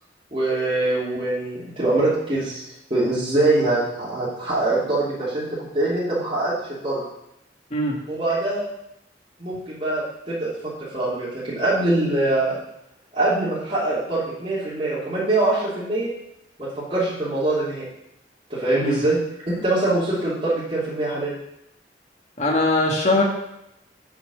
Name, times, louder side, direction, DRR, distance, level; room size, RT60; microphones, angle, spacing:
voice 1, 0.3-2.6 2.9-5.5 5.7-6.5 6.8-7.0 8.1-8.7 9.4-10.5 10.8-12.6 13.1-16.1 16.9-17.8 18.5-19.2 19.5-21.4, right 2 dB, 30° right, -11 dB, 2.9 m, -23 dB
voice 2, 22.4-23.2, left 2 dB, 40° left, 0 dB, 1.8 m, -21 dB
7.5 x 6.7 x 6.9 m, 0.83 s
head